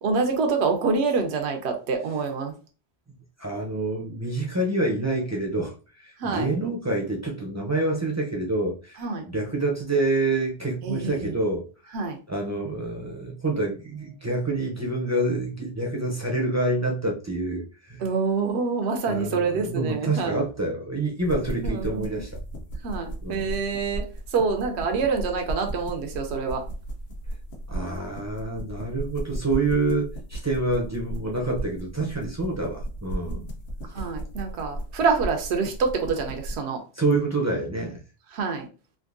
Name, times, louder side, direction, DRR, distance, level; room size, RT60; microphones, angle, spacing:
voice 1, 0.0-2.5 6.2-6.5 9.0-9.3 10.8-11.3 11.9-12.2 18.0-20.4 21.6-22.2 22.8-26.6 33.9-36.8 38.3-38.7, right 4 dB, 80° right, 0.9 m, -26 dB
voice 2, 3.4-11.9 12.3-18.0 19.1-22.4 23.2-23.6 27.7-33.5 33.9-34.1 36.9-38.0, right 2 dB, 20° right, 0.4 m, -27 dB
sound 1, 21.2-36.6, right 1 dB, 70° left, 1.1 m, -35 dB
3.6 x 2.6 x 2.5 m
omnidirectional pair, 1.1 m